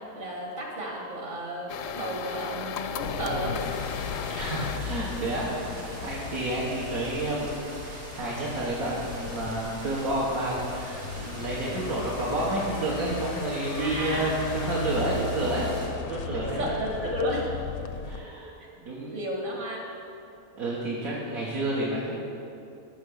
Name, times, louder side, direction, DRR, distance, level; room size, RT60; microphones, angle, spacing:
voice 1, 0.2-3.6 13.8-14.3 16.3-17.5 18.2-18.3 19.1-19.8, equal, 55° right, -2 dB, 2.4 m, -33 dB
sound 1, 1.7-7.0, left 7 dB, 70° left, 0.9 m, -38 dB
sound 2, 3.0-18.2, left 6 dB, 85° left, 1.1 m, -36 dB
sound 3, 3.5-15.9, right 1 dB, 85° right, 3.1 m, -43 dB
voice 2, 4.3-15.8 16.1-16.7 18.0-18.5 18.8-19.1 20.5-22.2, right 2 dB, 70° right, -7 dB, 2.0 m, -30 dB
15.0 x 5.9 x 6.5 m, 2.6 s
omnidirectional pair, 1.5 m